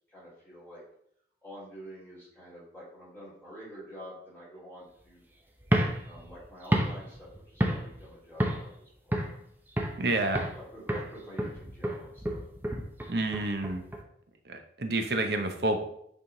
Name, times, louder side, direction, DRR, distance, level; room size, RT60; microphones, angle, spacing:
voice 1, 0.1-0.8 1.4-5.2 6.1-9.2 10.5-12.4, equal, 10° left, -9 dB, 2.4 m, -48 dB
sound 1, 5.6-8.1 8.4-8.7 9.1-10.0 10.3-10.6 10.9-14.0, equal, 10° right, 0.6 m, -30 dB
voice 2, 10.0-10.4 13.1-13.8 14.5-15.8, right 2 dB, 60° right, 6 dB, 0.8 m, -29 dB
8.4 x 3.6 x 3.8 m, 0.72 s
head